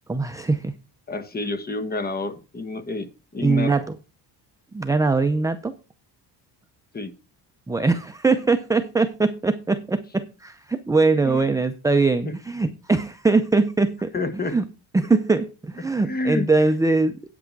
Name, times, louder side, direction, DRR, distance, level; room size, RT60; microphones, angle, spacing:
voice 1, 0.1-0.7 3.4-3.9 4.7-5.7 7.7-14.1 14.5-14.6 14.9-17.2, right 3 dB, 10° right, 0.5 m, -21 dB
voice 2, 1.1-3.7 6.9-7.1 11.2-11.4 12.2-12.4 14.1-14.6 16.0-16.5, left 3 dB, 20° left, 1.2 m, -29 dB
8.7 x 8.2 x 4.5 m
cardioid pair, 150°, 43 cm